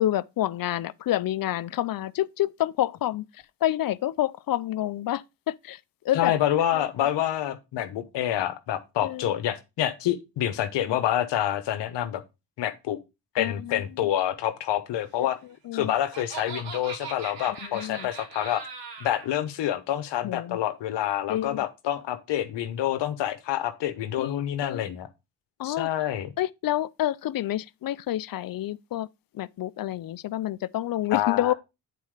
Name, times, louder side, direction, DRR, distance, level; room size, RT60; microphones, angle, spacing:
voice 1, 0.0-3.3 3.6-5.8 6.0-6.3 6.7-7.1 9.0-9.3 10.8-11.0 13.3-14.1 15.2-15.9 17.5-18.1 20.2-20.6 21.3-21.7 24.2-25.0 25.6-25.9 26.4-29.1 29.3-31.5, left 13 dB, 55° left, 0.5 m, -29 dB
voice 2, 6.1-12.2 12.6-13.0 13.4-15.4 15.7-18.7 19.0-25.1 25.6-26.3 31.1-31.5, left 11 dB, 85° left, 1.0 m, -27 dB
Laughter, 15.5-19.3, right 5 dB, 85° right, 2.5 m, -40 dB
8.5 x 4.2 x 4.9 m
cardioid pair, 65°, 41 cm